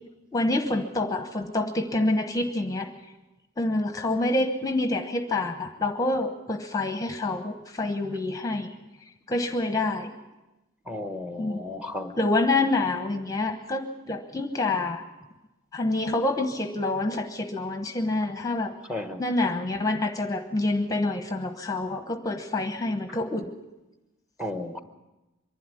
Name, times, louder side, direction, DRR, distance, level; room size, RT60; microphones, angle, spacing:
voice 1, 0.3-2.9 3.6-8.7 9.3-10.1 11.4-11.6 12.2-15.0 15.7-18.7 19.2-23.4, left 2 dB, 15° left, 6 dB, 1.0 m, -27 dB
voice 2, 10.9-12.1 18.9-19.2 24.4-24.8, left 1 dB, 5° right, 7 dB, 1.1 m, -34 dB
24.5 x 11.5 x 9.8 m, 1.0 s
head